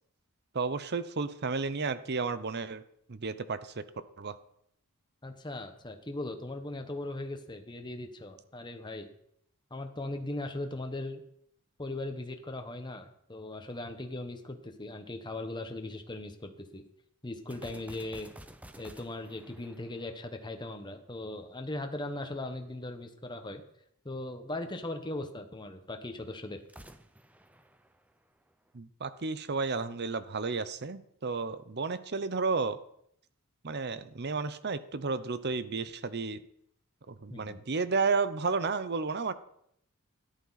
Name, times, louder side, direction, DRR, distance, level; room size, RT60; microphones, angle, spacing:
voice 1, 0.5-2.8 3.1-3.8 4.2-4.4 28.7-32.8 33.6-36.4 37.1-39.3, right 4 dB, 50° right, 13 dB, 0.7 m, -32 dB
voice 2, 5.2-9.1 9.7-11.2 11.8-16.8 17.2-18.3 18.8-23.6 24.0-26.6 37.3-37.6, left 2 dB, 20° left, 5 dB, 1.1 m, -39 dB
sound 1, 17.5-20.9 26.6-28.7, right 1 dB, 5° right, 0.6 m, -52 dB
13.5 x 11.0 x 4.1 m, 0.70 s
head